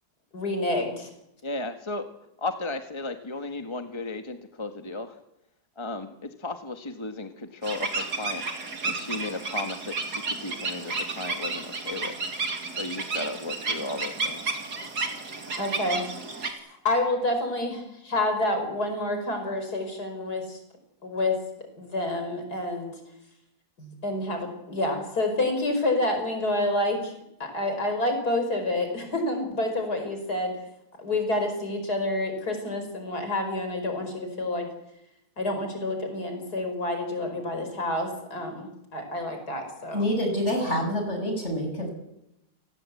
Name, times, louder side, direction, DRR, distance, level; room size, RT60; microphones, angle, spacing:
voice 1, 0.3-1.1 15.6-16.1 16.4-16.6 16.8-20.6 21.0-21.4 21.8-23.0 23.8-27.1 27.4-30.5 31.0-34.7 35.4-40.0, left 1 dB, 75° left, 6 dB, 5.6 m, -28 dB
voice 2, 1.4-2.0 2.4-5.2 5.8-8.4 8.8-12.2 12.8-14.5, left 2 dB, 20° left, 6 dB, 1.6 m, -35 dB
sound 1, 7.6-16.5, right 3 dB, 80° right, 3.4 m, -32 dB
voice 3, 39.9-41.9, equal, 45° left, 4 dB, 7.4 m, -27 dB
29.0 x 19.0 x 8.5 m, 0.85 s
omnidirectional pair, 1.7 m